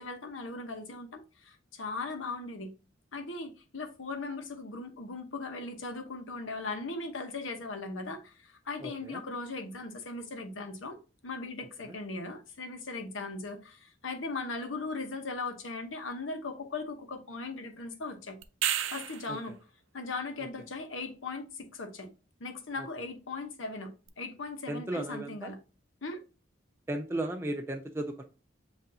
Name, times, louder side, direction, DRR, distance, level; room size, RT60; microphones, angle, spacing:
voice 1, 0.0-2.7 3.1-11.0 11.2-18.4 18.9-19.6 19.9-22.1 22.4-25.6 26.0-26.2, left 3 dB, 90° left, 0.9 m, -38 dB
voice 2, 8.8-9.2 11.9-12.0 19.3-19.4 24.7-25.5 26.9-28.2, right 1 dB, 15° right, 0.3 m, -35 dB
sound 1, 18.4-19.4 24.1-24.2, right 11 dB, 85° right, 0.4 m, -31 dB
7.6 x 2.6 x 2.7 m
head